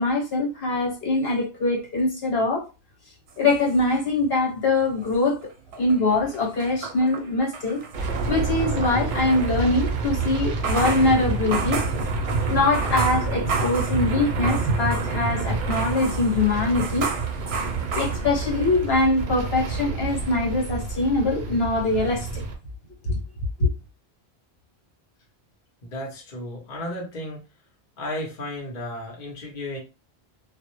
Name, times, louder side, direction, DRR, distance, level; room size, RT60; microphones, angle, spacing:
voice 1, 0.0-2.7 3.4-5.4 5.8-11.8 12.5-17.1 17.9-22.3 23.1-23.2 23.6-23.7, left 2 dB, 70° left, 1.2 m, -23 dB
sound 1, 3.3-4.5 4.8-9.0 10.4-15.3 15.7-18.6, right 5 dB, 90° right, 0.8 m, -33 dB
sound 2, 7.9-22.6, right 3 dB, 60° right, 0.6 m, -28 dB
voice 2, 25.8-27.4 28.0-29.8, left 1 dB, 50° left, 0.8 m, -33 dB
2.1 x 2.0 x 2.9 m
omnidirectional pair, 1.0 m